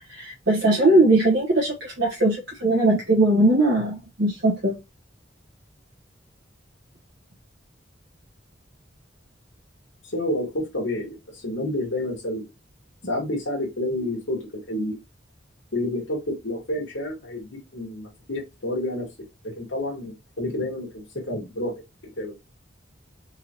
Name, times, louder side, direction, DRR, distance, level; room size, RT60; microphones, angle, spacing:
voice 1, 0.1-4.7, right 2 dB, 65° right, 1.4 m, -20 dB
voice 2, 10.1-12.5 13.0-15.0 15.7-19.1 19.4-21.8 22.2-22.4, left 1 dB, 85° left, 1.8 m, -29 dB
4.0 x 3.8 x 3.0 m
head